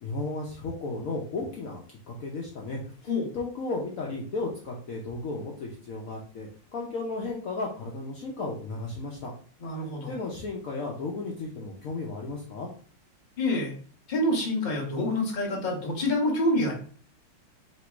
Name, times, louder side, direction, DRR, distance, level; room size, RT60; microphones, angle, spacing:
voice 1, 0.0-2.8 3.3-9.3 10.1-12.7, left 3 dB, 80° left, -2 dB, 0.7 m, -34 dB
voice 2, 9.6-10.2 13.4-13.7 14.1-16.7, left 1 dB, 35° left, -1 dB, 0.7 m, -27 dB
3.1 x 2.9 x 4.5 m, 0.43 s
omnidirectional pair, 2.3 m